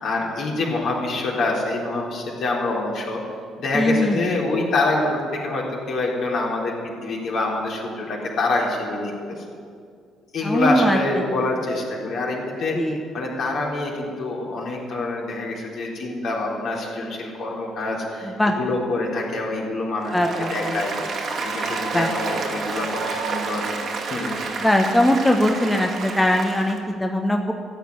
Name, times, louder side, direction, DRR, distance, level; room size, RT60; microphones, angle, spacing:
voice 1, 0.0-3.2 3.6-6.7 7.0-9.1 10.3-12.8 13.1-20.1 20.5-20.9 21.4-23.7 24.1-24.3, left 2 dB, 55° left, -3 dB, 3.9 m, -26 dB
voice 2, 3.7-4.2 10.4-11.0 12.7-13.0 18.4-18.5 20.1-20.8 21.9-22.1 24.6-27.5, left 1 dB, 10° left, 3 dB, 1.3 m, -20 dB
Applause, 20.0-26.8, right 4 dB, 50° right, 2.0 m, -29 dB
14.5 x 8.3 x 9.6 m, 2.2 s
figure-of-eight pair, 45°, 0 cm